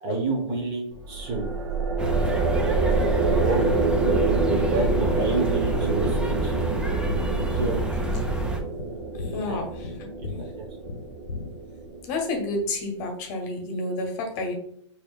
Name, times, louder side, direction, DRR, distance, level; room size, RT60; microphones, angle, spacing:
voice 1, 0.0-1.6 3.3-3.6 4.4-6.5 7.5-7.8 9.4-9.6 10.2-10.7, right 2 dB, 35° right, 2 dB, 0.9 m, -29 dB
sound 1, 1.0-12.4, right 3 dB, 70° right, 0.8 m, -27 dB
sound 2, 2.0-8.6, right 2 dB, 5° right, 0.4 m, -27 dB
sound 3, 5.6-11.9, left 3 dB, 85° left, 0.4 m, -38 dB
voice 2, 9.1-10.5 12.1-14.5, left 2 dB, 40° left, 2 dB, 0.9 m, -30 dB
4.4 x 2.8 x 2.3 m, 0.68 s
hypercardioid pair, 125°, 16 cm